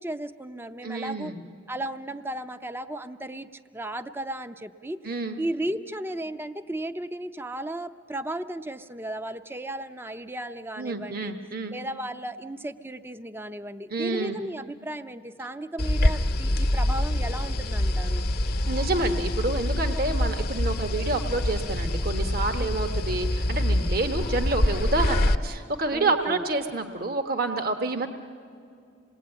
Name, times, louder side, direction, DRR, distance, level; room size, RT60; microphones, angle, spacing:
voice 1, 0.0-1.3 1.7-3.5 3.7-5.0 5.4-11.3 11.7-18.2 22.6-22.8 25.9-26.4, right 1 dB, 10° right, 10 dB, 0.6 m, -35 dB
voice 2, 0.8-1.4 5.0-5.4 10.8-11.7 13.9-14.4 18.7-28.1, right 2 dB, 55° right, 6 dB, 1.2 m, -28 dB
sound 1, 15.8-25.3, left 1 dB, 50° left, 0.9 m, -25 dB
27.0 x 19.5 x 8.9 m, 2.5 s
head